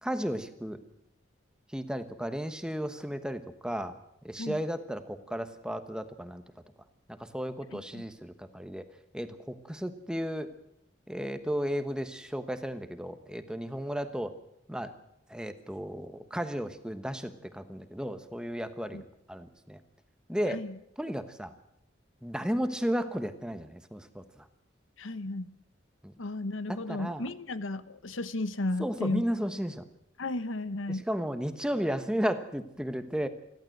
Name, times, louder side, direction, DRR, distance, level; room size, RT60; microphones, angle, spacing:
voice 1, 0.0-0.8 1.7-4.0 4.2-6.4 7.1-8.9 9.1-10.5 11.1-14.3 14.7-14.9 15.3-19.8 20.3-20.6 21.0-21.5 22.2-24.5 26.0-26.1 26.9-27.2 28.8-29.8 30.9-33.3, equal, 5° right, 9 dB, 1.2 m, -34 dB
voice 2, 7.7-8.0 18.9-19.0 20.5-20.8 25.0-25.5 26.2-29.3 30.2-31.1, left 2 dB, 85° left, 14 dB, 1.0 m, -34 dB
28.5 x 12.0 x 7.9 m, 0.79 s
head